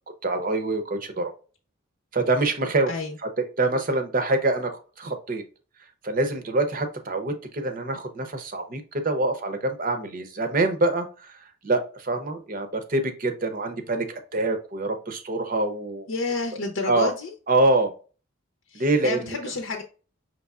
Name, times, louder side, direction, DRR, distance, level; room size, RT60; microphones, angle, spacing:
voice 1, 0.2-1.3 2.1-2.9 3.2-4.7 5.0-5.4 6.0-11.0 11.6-16.1 16.8-17.1 17.5-17.9 18.7-19.4, right 2 dB, 40° right, 7 dB, 0.7 m, -25 dB
voice 2, 2.9-3.2 16.1-17.3 18.7-19.8, left 3 dB, 70° left, 2 dB, 0.7 m, -30 dB
5.3 x 3.2 x 2.3 m, 0.36 s
head